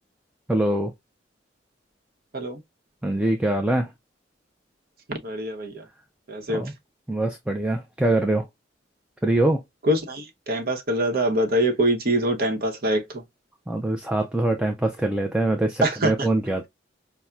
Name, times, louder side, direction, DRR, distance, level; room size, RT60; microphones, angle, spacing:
voice 1, 0.5-0.9 3.0-3.9 6.5-6.7 7.1-8.5 9.2-9.6 13.7-16.7, right 1 dB, 5° right, 0.3 m, -23 dB
voice 2, 5.1-5.8 6.3-6.7 9.8-13.2 15.8-16.3, right 1 dB, 55° right, 0.8 m, -24 dB
5.6 x 2.1 x 2.3 m
head